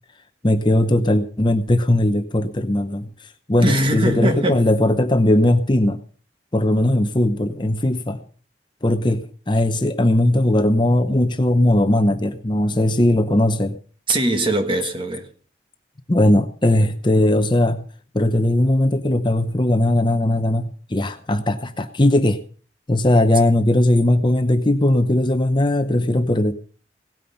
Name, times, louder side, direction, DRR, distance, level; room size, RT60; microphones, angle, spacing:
voice 1, 0.4-6.0 6.5-8.2 8.8-13.8 16.1-17.8 18.1-22.4 22.9-26.5, left 1 dB, 25° left, 0.8 m, -18 dB
voice 2, 3.6-4.6 14.1-15.3, right 1 dB, 30° right, 1.7 m, -21 dB
17.5 x 9.1 x 5.8 m
head